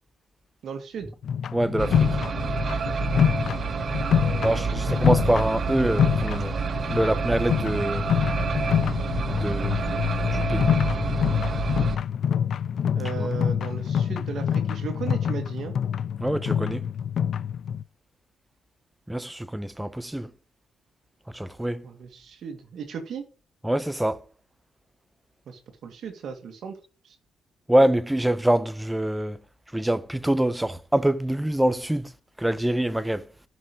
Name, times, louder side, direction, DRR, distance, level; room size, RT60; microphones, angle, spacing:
voice 1, 0.6-1.1 4.2-5.1 12.9-15.7 21.8-23.3 25.5-26.8 27.0-27.2, right 6 dB, 65° right, 2.1 m, -36 dB
sound 1, 1.2-17.8, left 8 dB, 60° left, 0.5 m, -26 dB
voice 2, 1.5-2.1 4.4-6.5 6.9-8.1 9.3-10.7 13.2-13.3 16.2-16.9 19.1-20.3 21.3-21.8 23.6-24.2 27.7-29.4 29.7-32.1 32.4-33.3, right 1 dB, 5° right, 0.9 m, -25 dB
sound 2, 1.8-12.0, right 5 dB, 50° right, 0.8 m, -29 dB
11.0 x 6.2 x 5.2 m
cardioid pair, 90°, 0 cm